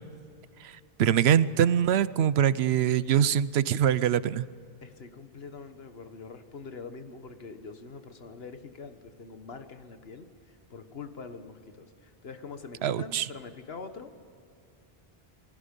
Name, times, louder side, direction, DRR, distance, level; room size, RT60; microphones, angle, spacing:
voice 1, 1.0-4.5 12.8-13.3, right 9 dB, 90° right, 17 dB, 0.9 m, -23 dB
voice 2, 4.8-14.2, left 4 dB, 75° left, 8 dB, 1.6 m, -44 dB
27.0 x 20.0 x 5.3 m, 2.6 s
omnidirectional pair, 1.0 m